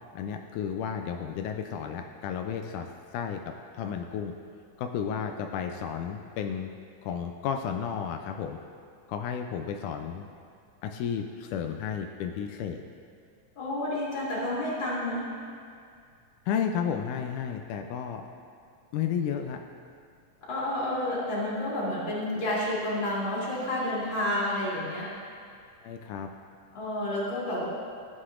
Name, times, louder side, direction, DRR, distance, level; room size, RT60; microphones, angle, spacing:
voice 1, 0.1-2.9 3.1-4.3 4.8-6.7 7.0-8.6 9.1-10.3 10.8-12.8 16.5-18.2 18.9-19.6 25.8-26.3, left 7 dB, 90° left, 4 dB, 2.0 m, -32 dB
voice 2, 13.6-15.3 20.5-25.1 26.7-27.7, left 1 dB, 40° left, -7 dB, 2.9 m, -30 dB
14.0 x 8.3 x 2.5 m, 2.3 s
omnidirectional pair, 3.5 m